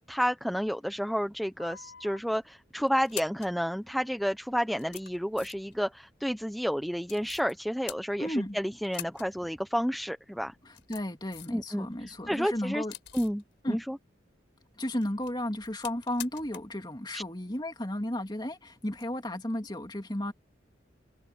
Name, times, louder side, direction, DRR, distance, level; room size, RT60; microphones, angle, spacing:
voice 1, 0.1-10.5 11.5-11.9 12.3-12.8 13.1-14.0 17.1-17.2, equal, ahead, 0.8 m, -30 dB
sound 1, 1.6-2.2 2.9-3.6 4.3-4.4 4.7-5.8 7.0-7.5 7.9-8.5 8.8-9.3 9.6-9.7 10.5-11.6 12.0-13.4 14.8-16.8 17.0-17.1 18.9-19.0, left 11 dB, 70° left, 4.8 m, -45 dB
voice 2, 8.2-8.6 10.6-12.9 13.6-13.8 14.7-20.3, left 1 dB, 25° left, 2.6 m, -33 dB
head